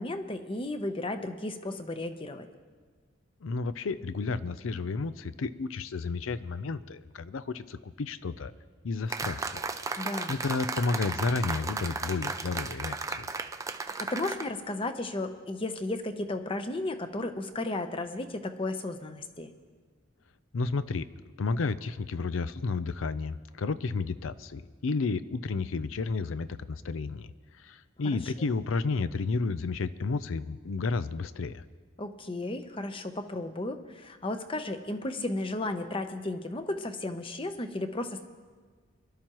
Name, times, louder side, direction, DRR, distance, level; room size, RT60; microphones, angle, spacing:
voice 1, 0.0-2.5 10.0-10.4 13.8-19.5 32.0-38.2, left 2 dB, 25° left, 8 dB, 0.8 m, -34 dB
voice 2, 3.4-8.5 8.8-9.6 10.3-13.3 20.5-21.1 21.4-27.3 27.6-31.6, left 4 dB, 85° left, 14 dB, 0.5 m, -32 dB
sound 1, 9.1-14.5, right 3 dB, 15° right, 0.4 m, -35 dB
24.0 x 12.0 x 3.0 m, 1.5 s
head